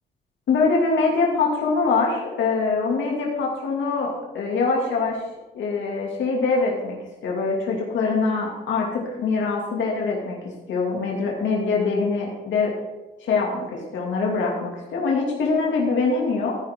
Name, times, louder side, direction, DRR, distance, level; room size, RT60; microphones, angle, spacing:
voice 1, 0.5-5.2 5.5-7.0 7.2-10.4 10.7-12.7 13.2-16.6, left 4 dB, 70° left, -2 dB, 2.5 m, -23 dB
13.5 x 10.5 x 3.7 m, 1.1 s
cardioid pair, 90°, 20 cm